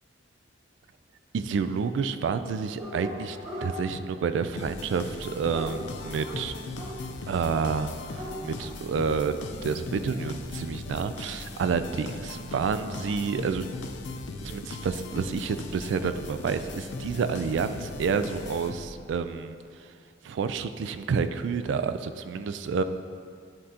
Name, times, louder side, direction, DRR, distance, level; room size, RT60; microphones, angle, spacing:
voice 1, 1.3-6.5 7.3-13.7 14.4-19.9 20.2-22.8, right 5 dB, 75° right, 11 dB, 0.3 m, -29 dB
Dog, 2.8-3.7 4.8-6.9 7.6-7.7 8.0-8.7, equal, 35° right, 1.5 m, -39 dB
sound 1, 4.6-19.1, left 3 dB, 65° left, 0.5 m, -39 dB
9.8 x 3.7 x 2.8 m, 2.2 s
head